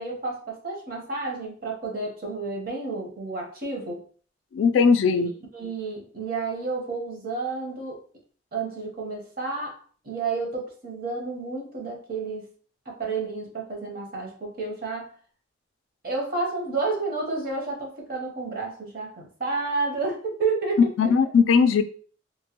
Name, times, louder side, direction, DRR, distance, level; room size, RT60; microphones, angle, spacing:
voice 1, 0.0-4.0 5.5-8.0 8.5-12.5 12.9-15.1 16.0-20.8, right 3 dB, 50° right, -1 dB, 0.9 m, -30 dB
voice 2, 4.5-5.3 21.0-21.8, left 5 dB, 75° left, 10 dB, 0.3 m, -19 dB
3.0 x 2.2 x 2.8 m, 0.43 s
head